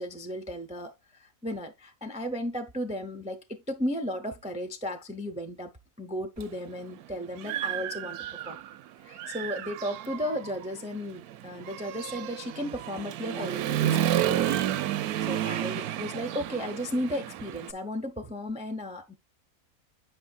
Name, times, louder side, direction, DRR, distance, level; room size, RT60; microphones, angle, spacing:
voice 1, 0.0-5.7 6.0-8.6 9.0-14.6 15.2-19.2, equal, 10° right, 0.4 m, -35 dB
Human voice / Motorcycle, 6.4-6.5 7.0-8.8 9.1-17.7, right 12 dB, 80° right, 1.1 m, -31 dB
8.8 x 5.5 x 2.4 m
omnidirectional pair, 1.6 m